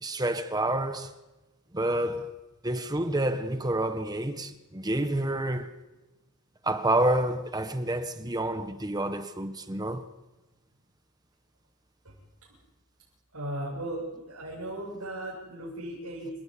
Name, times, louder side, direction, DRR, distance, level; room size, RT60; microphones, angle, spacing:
voice 1, 0.0-1.1 1.7-2.3 2.6-5.7 6.6-10.0, right 1 dB, 15° right, 1.2 m, -28 dB
voice 2, 13.3-16.3, right 1 dB, 85° right, 7.7 m, -36 dB
29.5 x 17.0 x 8.5 m
head